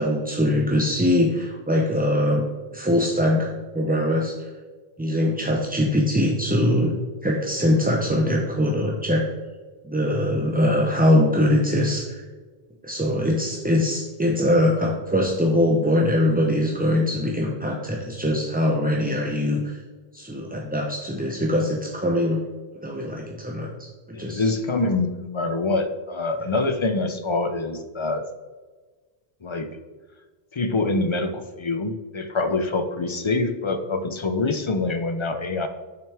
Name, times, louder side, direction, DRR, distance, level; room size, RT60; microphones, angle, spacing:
voice 1, 0.0-2.5 2.7-4.5 5.0-6.9 7.2-9.3 9.8-12.2 12.8-19.8 20.1-22.4 22.8-24.5, left 1 dB, 10° right, -1 dB, 0.5 m, -22 dB
voice 2, 24.1-28.2 29.4-29.7 30.5-35.7, left 3 dB, 40° left, 8 dB, 0.4 m, -25 dB
7.0 x 5.8 x 3.3 m, 1.4 s
omnidirectional pair, 1.1 m